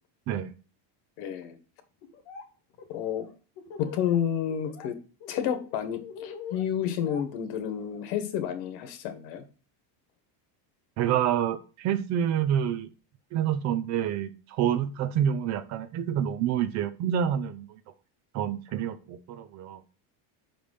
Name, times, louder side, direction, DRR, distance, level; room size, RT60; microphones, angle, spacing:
voice 1, 1.2-1.6 2.9-3.3 3.8-5.0 5.3-9.4, left 9 dB, 90° left, 9 dB, 1.6 m, -30 dB
Laughter, 2.0-2.4 2.7-4.2 4.5-4.9 5.2-8.0, left 6 dB, 55° left, 1.9 m, -44 dB
voice 2, 11.0-12.9 13.3-17.8 18.3-19.8, right 9 dB, 40° right, 12 dB, 0.4 m, -28 dB
5.7 x 5.2 x 6.6 m, 0.36 s
cardioid pair, 180°, 50 cm